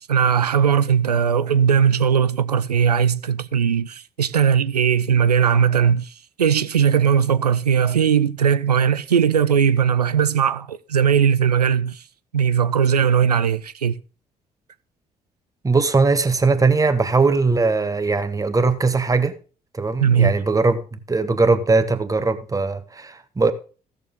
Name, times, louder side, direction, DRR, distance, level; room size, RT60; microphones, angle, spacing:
voice 1, 0.1-6.1 6.4-12.0 12.3-13.9 20.0-20.3, right 7 dB, 85° right, 0.4 m, -18 dB
voice 2, 15.6-19.3 19.7-20.8 21.1-23.5, right 3 dB, 15° right, 1.2 m, -19 dB
15.5 x 6.8 x 3.8 m
figure-of-eight pair, 45°, 20 cm